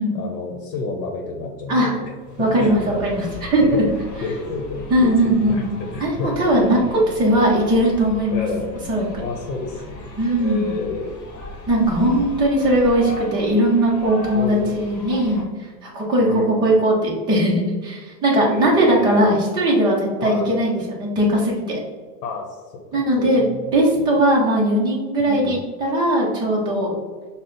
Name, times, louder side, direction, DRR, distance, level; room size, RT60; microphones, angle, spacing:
voice 1, 0.1-2.1 2.4-3.3 3.6-3.8 4.2-6.8 8.3-8.7 9.2-11.1 12.0-12.1 14.3-14.8 16.2-16.7 18.4-19.2 20.2-20.5 22.2-22.6 22.9-24.1 25.2-25.6, left 3 dB, 70° left, 1 dB, 0.9 m, -30 dB
voice 2, 1.7-2.0 2.4-3.8 4.9-5.6 6.0-6.8 7.2-8.5 8.9-9.0 10.2-10.7 11.7-15.4 15.8-21.8 22.9-23.5 23.7-26.9, right 1 dB, 10° right, -4 dB, 0.5 m, -19 dB
sound 1, 2.2-15.4, left 1 dB, 30° left, 1.0 m, -37 dB
5.8 x 2.1 x 3.8 m, 1.4 s
supercardioid pair, 155°, 48 cm